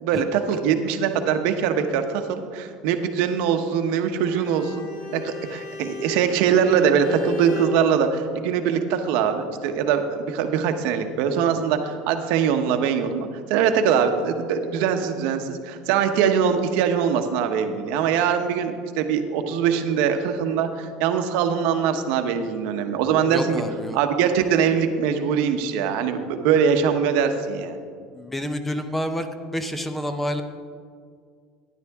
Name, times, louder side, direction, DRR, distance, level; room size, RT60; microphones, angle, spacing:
voice 1, 0.0-4.9 5.1-23.6 23.9-27.8, right 7 dB, 70° right, 7 dB, 0.9 m, -22 dB
Bowed string instrument, 4.1-7.8, left 6 dB, 45° left, 1.6 m, -37 dB
voice 2, 23.3-24.0 28.1-29.3 29.5-30.4, equal, 5° left, 8 dB, 0.6 m, -28 dB
13.0 x 10.0 x 3.6 m, 2.1 s
cardioid pair, 140°, 2 cm